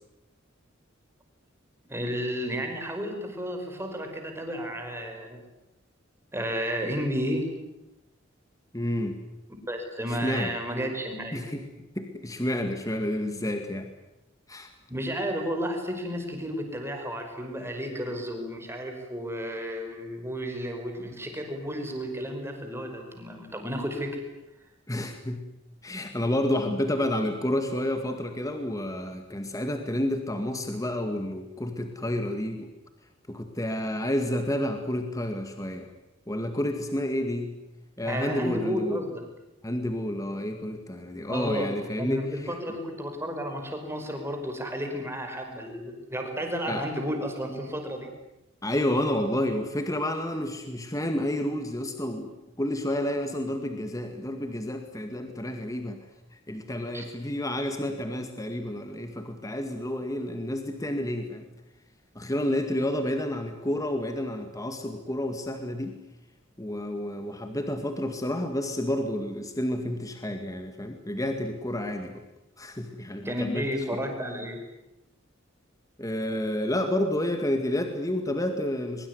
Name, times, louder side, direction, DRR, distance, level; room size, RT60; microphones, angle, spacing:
voice 1, 1.9-5.4 6.3-7.5 9.7-11.5 14.9-24.2 38.0-39.2 41.3-41.7 42.0-48.1 56.9-57.0 73.2-74.6, equal, 15° right, 4 dB, 5.3 m, -32 dB
voice 2, 8.7-9.2 10.1-10.5 11.3-11.6 12.0-13.9 14.5-14.7 24.9-25.4 25.8-32.7 33.3-35.9 36.3-37.6 38.0-39.0 39.6-42.6 46.7-46.8 48.6-56.0 56.3-61.5 62.2-66.0 66.6-72.1 72.6-73.7 76.0-79.1, left 1 dB, 15° left, 6 dB, 2.1 m, -30 dB
23.5 x 23.0 x 9.7 m, 0.91 s
head